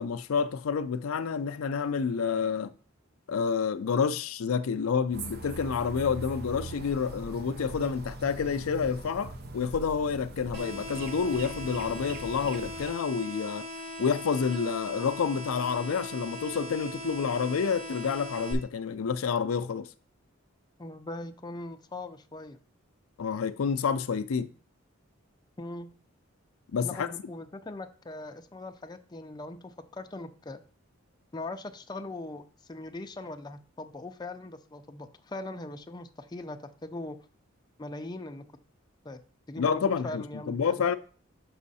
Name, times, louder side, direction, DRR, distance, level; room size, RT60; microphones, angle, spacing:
voice 1, 0.0-2.7 3.3-13.7 14.0-19.9 23.2-24.5 26.7-27.1 39.6-41.0, left 6 dB, 80° left, 0.4 m, -29 dB
sound 1, 5.1-12.9, right 2 dB, 50° right, 0.8 m, -41 dB
sound 2, 10.5-18.5, left 1 dB, 30° right, 2.4 m, -40 dB
voice 2, 20.8-22.6 25.6-25.9 26.8-30.6 31.3-37.2 37.8-38.5 39.0-39.2 39.5-40.9, left 2 dB, 20° left, 0.5 m, -40 dB
6.1 x 5.6 x 4.1 m
head